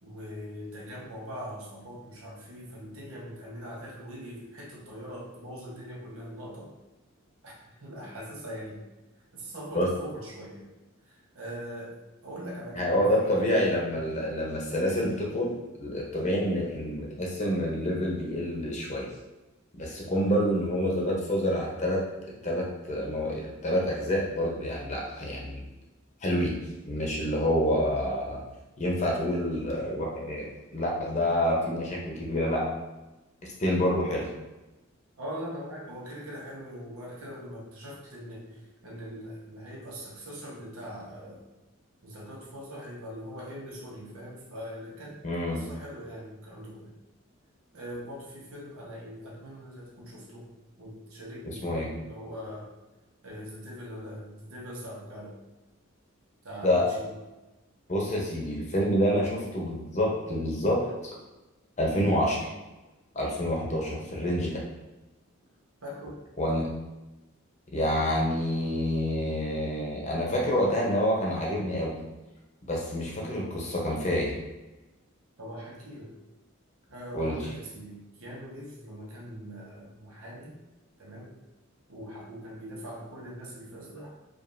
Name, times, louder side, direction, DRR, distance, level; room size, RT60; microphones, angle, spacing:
voice 1, 0.0-6.7 7.4-8.8 9.3-10.7 11.1-12.0 12.2-13.9 35.2-41.4 42.0-45.2 45.5-46.9 47.7-50.5 50.8-52.7 53.2-55.4 56.4-57.1 65.8-66.2 75.4-76.1 76.9-80.6 81.0-81.4 81.9-84.2, equal, 90° right, -4 dB, 1.1 m, -42 dB
voice 2, 12.7-15.5 15.8-19.1 19.8-22.0 22.4-25.6 26.2-26.6 26.8-28.4 28.8-32.7 33.6-34.3 45.2-45.6 51.4-51.9 56.6-56.9 57.9-61.1 61.8-62.5 63.1-64.6 66.4-66.7 67.7-72.0 72.7-74.4 77.1-77.4, equal, 35° left, -2 dB, 0.8 m, -27 dB
5.1 x 2.5 x 2.6 m, 1.1 s
head